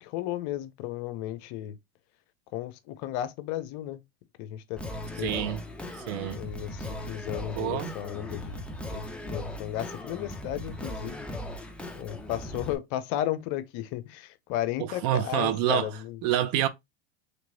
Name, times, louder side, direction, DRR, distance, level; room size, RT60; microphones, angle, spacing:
voice 1, 0.0-1.8 2.5-4.0 4.4-4.8 5.2-5.5 6.3-8.6 8.9-11.3 11.9-16.2, left 12 dB, 50° left, 0.7 m, -34 dB
Singing, 4.8-12.7, left 1 dB, 5° left, 0.5 m, -38 dB
voice 2, 5.2-5.6 6.1-6.4 7.6-7.9 14.8-15.9 16.2-16.7, right 11 dB, 50° right, 0.6 m, -27 dB
3.3 x 3.0 x 2.6 m
hypercardioid pair, 105°, 34 cm